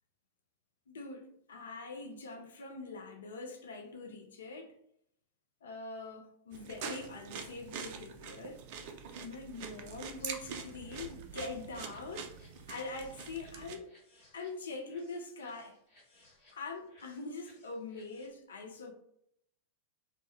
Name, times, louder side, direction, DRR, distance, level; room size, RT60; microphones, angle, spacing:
voice 1, 0.9-4.7 5.6-8.6 9.2-13.9 14.3-15.8 16.5-18.9, left 3 dB, 65° left, 0.4 m, -43 dB
sound 1, 6.5-13.8, right 6 dB, 50° right, 0.3 m, -44 dB
sound 2, 10.2-18.3, left 2 dB, 50° left, 1.2 m, -65 dB
2.1 x 2.1 x 2.8 m
figure-of-eight pair, 90°, 0 cm